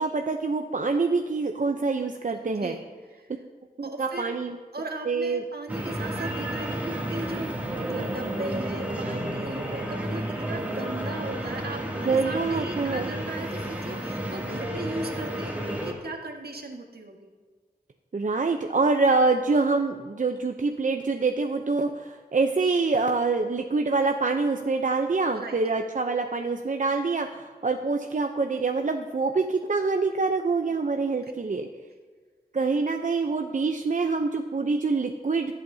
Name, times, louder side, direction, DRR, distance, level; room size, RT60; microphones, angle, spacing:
voice 1, 0.0-2.8 4.0-4.6 5.1-5.4 12.1-13.0 18.1-31.6 32.5-35.6, right 4 dB, 50° right, 4 dB, 0.7 m, -25 dB
voice 2, 2.4-3.3 3.8-4.4 4.7-17.3 25.3-25.6 30.7-30.8 31.1-31.3, right 2 dB, 70° right, 2 dB, 1.6 m, -37 dB
sound 1, 5.7-15.9, right 1 dB, 10° right, 2.5 m, -32 dB
21.5 x 8.4 x 2.8 m, 1.5 s
wide cardioid pair, 60°, 17 cm